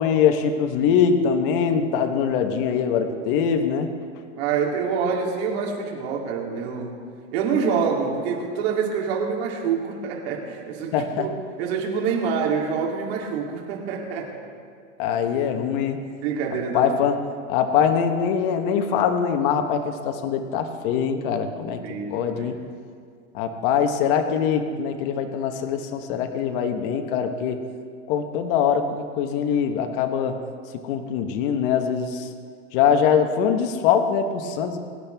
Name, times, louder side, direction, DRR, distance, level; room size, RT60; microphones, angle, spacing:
voice 1, 0.0-3.9 10.9-11.3 15.0-16.0 16.7-17.2 17.5-21.8 22.1-22.5 23.3-27.6 28.1-30.4 30.8-32.3 32.7-34.8, left 7 dB, 45° left, 6 dB, 1.2 m, -23 dB
voice 2, 4.4-7.0 7.3-14.3 16.2-16.9 21.8-22.5, right 6 dB, 55° right, -1 dB, 3.2 m, -26 dB
22.5 x 10.5 x 3.5 m, 2.2 s
supercardioid pair, 150°, 37 cm